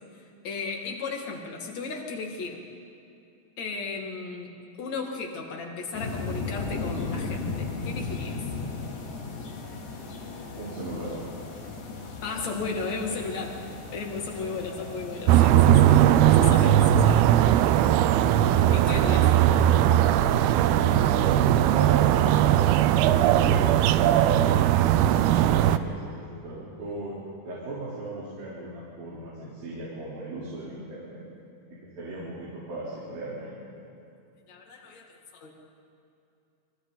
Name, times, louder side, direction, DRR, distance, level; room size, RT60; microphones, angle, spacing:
voice 1, 0.4-2.6 3.6-4.5 4.8-8.4 12.2-16.0 16.3-17.3 18.7-19.2 34.5-35.5, left 4 dB, 50° left, 1 dB, 3.2 m, -35 dB
sound 1, 5.9-15.4, left 4 dB, 75° left, 4.5 m, -36 dB
voice 2, 10.6-11.2 18.4-20.4 20.9-22.2 22.8-27.2 27.4-31.3 31.7-33.6, right 2 dB, 70° right, -8 dB, 5.6 m, -38 dB
sound 2, 15.3-25.8, right 11 dB, 85° right, 2.6 m, -19 dB
29.0 x 24.5 x 4.1 m, 2.6 s
omnidirectional pair, 4.3 m